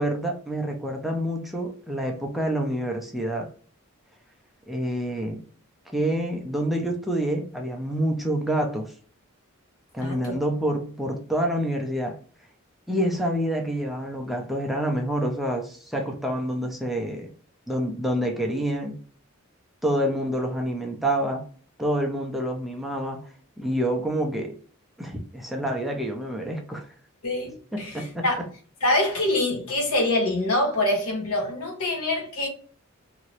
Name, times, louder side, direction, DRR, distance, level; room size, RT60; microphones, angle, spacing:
voice 1, 0.0-3.5 4.7-5.4 5.9-8.9 9.9-12.2 12.9-17.3 17.7-19.0 19.8-21.5 21.8-23.3 23.6-24.6 25.0-26.9 27.7-28.3, right 1 dB, ahead, 0.4 m, -27 dB
voice 2, 10.0-10.4 27.2-28.4 28.8-32.5, left 1 dB, 85° left, 1.0 m, -25 dB
2.9 x 2.6 x 3.0 m
head